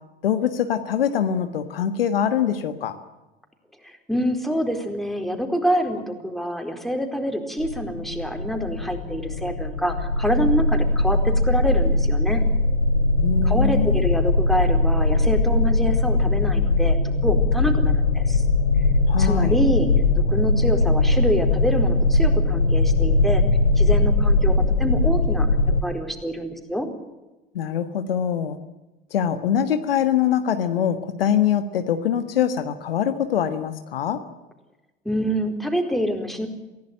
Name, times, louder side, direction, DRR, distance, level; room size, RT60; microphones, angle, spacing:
voice 1, 0.2-3.0 13.2-14.1 19.1-19.6 27.5-28.6 29.1-34.2, left 9 dB, 75° left, 9 dB, 1.6 m, -23 dB
voice 2, 3.8-12.4 13.4-18.4 19.2-19.9 20.3-23.4 23.8-25.5 25.8-26.9 35.0-36.5, equal, ahead, 4 dB, 4.3 m, -26 dB
sound 1, 7.6-25.8, left 2 dB, 90° left, 1.4 m, -20 dB
24.5 x 16.5 x 9.1 m, 1.1 s
figure-of-eight pair, 70°, 29 cm